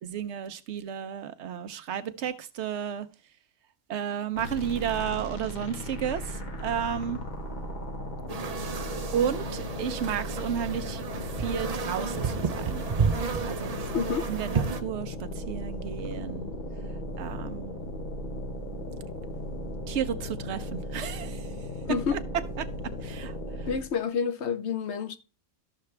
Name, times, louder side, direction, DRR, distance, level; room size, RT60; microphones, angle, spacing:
voice 1, 0.0-3.1 3.9-7.2 9.1-12.9 13.4-13.9 14.3-16.5 17.2-17.8 19.9-21.5 22.1-22.2 22.6-22.7 23.0-23.3, right 8 dB, 65° right, 1.0 m, -32 dB
sound 1, 4.4-24.0, left 1 dB, 40° left, 1.2 m, -36 dB
sound 2, 8.3-14.8, right 5 dB, 40° right, 0.6 m, -31 dB
voice 2, 13.9-14.3 21.9-22.2 23.6-25.2, left 6 dB, 65° left, 1.0 m, -29 dB
13.0 x 5.8 x 3.3 m
omnidirectional pair, 1.3 m